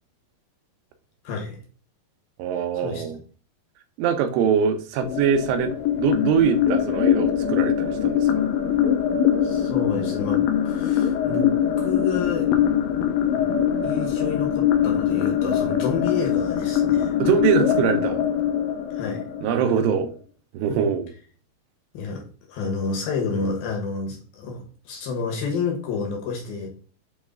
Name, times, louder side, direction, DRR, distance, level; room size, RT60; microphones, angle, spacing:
voice 1, 1.2-1.6 2.8-3.0 9.4-11.5 11.8-12.5 13.8-17.2 18.9-19.4 21.9-22.2 22.5-26.7, left 5 dB, 70° left, 1 dB, 2.6 m, -29 dB
voice 2, 2.4-3.2 4.0-5.7 6.0-8.4 17.2-18.2 19.4-20.1 20.5-21.1, right 7 dB, 90° right, 7 dB, 3.0 m, -23 dB
sound 1, 5.0-20.0, left 9 dB, 90° left, 2.0 m, -23 dB
8.5 x 3.2 x 3.7 m, 0.41 s
omnidirectional pair, 4.9 m